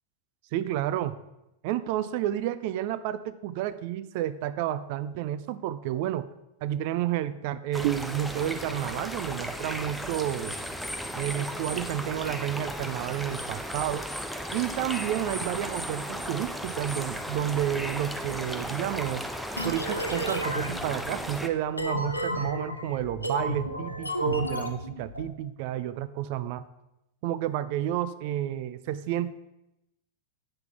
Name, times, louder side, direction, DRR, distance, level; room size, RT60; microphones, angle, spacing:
voice 1, 0.5-1.2 1.6-6.3 6.6-10.6 11.2-14.1 14.5-19.2 19.6-26.6 27.2-29.3, right 12 dB, 45° right, 13 dB, 0.4 m, -30 dB
sound 1, 7.7-21.5, equal, ahead, 0.7 m, -35 dB
sound 2, 19.6-25.3, equal, 85° left, 0.7 m, -33 dB
8.7 x 5.9 x 4.6 m, 0.88 s
figure-of-eight pair, 90°, 0 cm